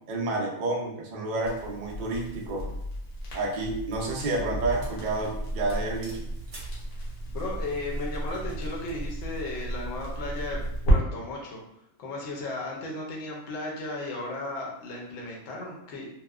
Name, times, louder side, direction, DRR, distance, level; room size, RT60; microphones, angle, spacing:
voice 1, 0.1-2.7 3.3-6.3, right 2 dB, 80° right, -2 dB, 0.4 m, -30 dB
Crackle, 1.4-11.0, right 1 dB, 85° left, 1.3 m, -32 dB
sound 1, 2.4-2.5 3.1-4.4 4.8-5.1 5.3-5.4 5.7-6.8, right 1 dB, 50° right, 0.9 m, -50 dB
voice 2, 7.3-10.6 10.9-11.6 12.0-16.1, left 2 dB, 65° left, -2 dB, 0.8 m, -35 dB
2.9 x 2.0 x 2.3 m, 0.78 s
omnidirectional pair, 1.5 m